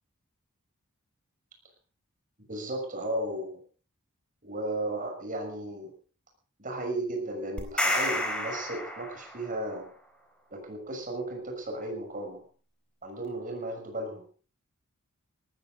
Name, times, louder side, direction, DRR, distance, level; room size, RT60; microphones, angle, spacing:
voice 1, 2.5-3.6 4.4-5.9 6.6-9.9 10.5-12.4 13.0-14.2, right 1 dB, 40° right, 4 dB, 6.2 m, -35 dB
sound 1, 7.6-9.5, left 1 dB, 5° left, 4.1 m, -30 dB
18.5 x 14.5 x 5.1 m, 0.41 s
head